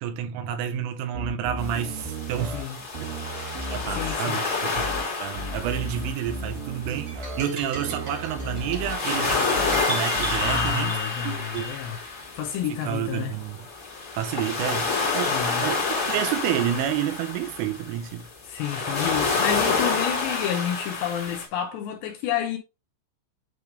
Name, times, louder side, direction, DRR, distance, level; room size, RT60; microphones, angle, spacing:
voice 1, 0.0-2.6 3.7-9.5 9.9-11.0 11.3-11.7 12.7-13.6 14.2-18.3, right 10 dB, 85° right, 3.5 m, -30 dB
sound 1, 1.1-2.6 2.9-4.1 4.7-5.0 5.3-7.4 7.7-8.9 9.5-9.8 10.1-10.7, right 1 dB, 70° right, 2.4 m, -34 dB
sound 2, 1.6-21.5, left 4 dB, 25° left, 1.7 m, -29 dB
voice 2, 3.9-4.4 10.4-12.0 12.4-13.4 15.3-15.7 18.5-22.6, left 9 dB, 75° left, 2.7 m, -30 dB
sound 3, 7.1-11.8, right 2 dB, 40° right, 1.9 m, -35 dB
8.6 x 3.5 x 3.2 m
omnidirectional pair, 5.7 m